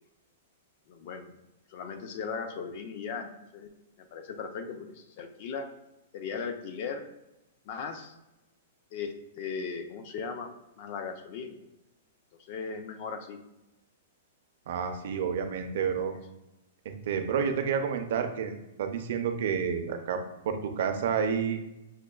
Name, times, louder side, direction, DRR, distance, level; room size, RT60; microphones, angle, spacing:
voice 1, 0.9-1.4 1.7-3.7 4.0-5.7 6.1-7.0 7.7-8.1 8.9-10.5 10.8-11.6 12.4-13.4 15.0-15.3 16.1-16.2, left 5 dB, 40° left, 6 dB, 0.4 m, -38 dB
voice 2, 14.7-16.1 16.8-20.2 20.4-21.6, right 7 dB, 55° right, 6 dB, 0.5 m, -30 dB
6.3 x 2.2 x 2.3 m, 0.94 s
supercardioid pair, 175°, 0 cm